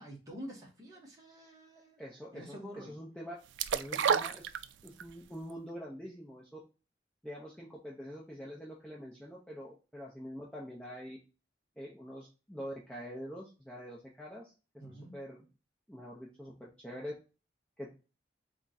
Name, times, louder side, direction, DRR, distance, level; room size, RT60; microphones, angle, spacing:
voice 1, 0.0-2.0 2.3-2.9 14.8-15.1, equal, 20° right, -2 dB, 1.3 m, -47 dB
voice 2, 2.0-3.3 3.7-4.5 4.8-6.6 7.2-11.2 11.8-15.5 15.9-17.1 17.8-17.9, equal, 5° left, -5 dB, 0.8 m, -45 dB
sound 1, 3.6-5.1 5.5-5.6, right 7 dB, 85° right, 0.3 m, -30 dB
3.7 x 3.6 x 4.1 m, 0.32 s
head